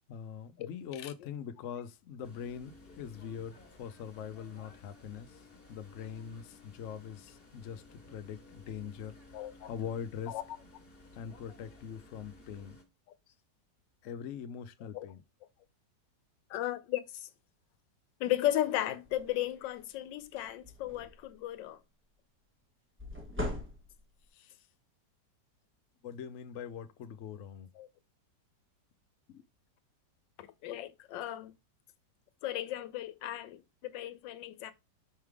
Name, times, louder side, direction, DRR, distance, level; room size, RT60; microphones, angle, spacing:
voice 1, 0.1-10.4 11.1-12.8 14.0-15.2 26.0-27.7 29.3-29.4, left 7 dB, 65° left, 0.7 m, -43 dB
sound 1, 2.2-12.8, left 2 dB, 35° left, 1.5 m, -56 dB
voice 2, 9.3-9.7 10.3-10.4 14.9-15.1 16.5-17.3 18.2-21.8 27.8-27.9 30.4-31.5 32.4-34.7, left 13 dB, 85° left, 1.4 m, -35 dB
sound 2, 19.0-19.3 19.8-19.9 20.2-21.3 23.0-24.2, left 1 dB, 10° right, 0.8 m, -39 dB
5.6 x 3.5 x 4.6 m
omnidirectional pair, 1.9 m